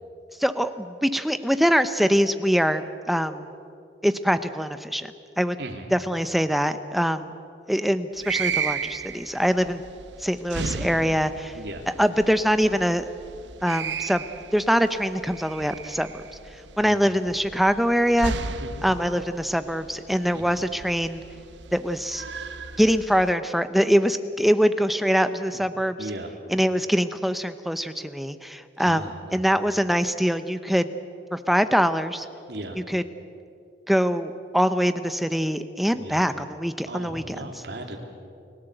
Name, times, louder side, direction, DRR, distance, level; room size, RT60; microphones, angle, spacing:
voice 1, 0.4-3.5 4.0-5.6 5.9-7.3 7.7-9.8 10.2-11.5 12.0-13.0 13.6-14.2 14.5-16.2 16.8-18.3 18.8-21.2 21.7-22.2 22.8-26.0 26.5-30.9 31.3-32.3 32.9-33.0 33.9-37.4, equal, ahead, 10 dB, 0.8 m, -23 dB
voice 2, 5.6-5.9 11.5-11.9 16.8-17.1 18.6-18.9 20.3-20.6 25.5-26.4 28.8-29.5 32.5-32.8 35.9-36.2 36.9-38.0, right 1 dB, 70° right, 3 dB, 3.0 m, -38 dB
sound 1, 8.2-23.3, right 5 dB, 85° right, 1.0 m, -35 dB
29.5 x 17.0 x 8.0 m, 2.5 s
head